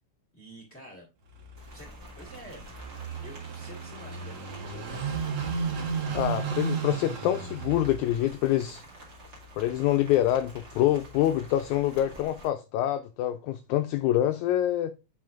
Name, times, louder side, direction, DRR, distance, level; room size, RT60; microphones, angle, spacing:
voice 1, 0.3-1.0 1.7-2.6 3.1-5.1, equal, 30° left, 1.4 m, -48 dB
Car passing by / Idling, 1.3-11.9, right 5 dB, 55° right, 1.9 m, -36 dB
Rain, 1.6-12.5, right 2 dB, 35° right, 2.2 m, -50 dB
voice 2, 6.1-8.8 9.6-14.9, left 12 dB, 80° left, 1.8 m, -26 dB
7.4 x 5.6 x 2.4 m
omnidirectional pair, 3.7 m